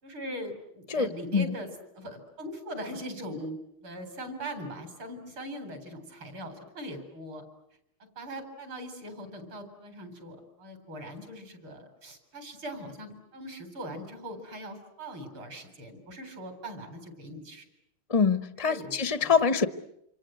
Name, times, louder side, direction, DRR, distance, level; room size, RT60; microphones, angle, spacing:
voice 1, 0.0-7.4 8.2-17.7 18.6-18.9 19.2-19.4, equal, 70° right, 5.1 m, -41 dB
voice 2, 0.9-1.5 18.1-19.7, left 5 dB, 30° left, 0.7 m, -25 dB
28.0 x 26.0 x 7.8 m
omnidirectional pair, 2.3 m